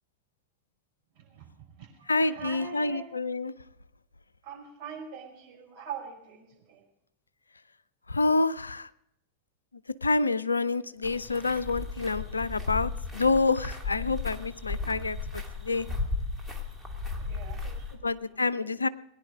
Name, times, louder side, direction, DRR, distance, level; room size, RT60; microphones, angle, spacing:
voice 1, 1.2-3.0 4.4-6.8 14.8-14.9 17.2-18.7, right 6 dB, 50° right, -1 dB, 5.3 m, -43 dB
voice 2, 2.1-3.5 8.1-8.9 10.0-15.9 18.0-18.9, left 3 dB, 80° left, 18 dB, 0.4 m, -27 dB
sound 1, 11.0-18.0, left 4 dB, 5° left, 2.4 m, -35 dB
19.5 x 10.5 x 5.1 m, 0.79 s
figure-of-eight pair, 90°, 0 cm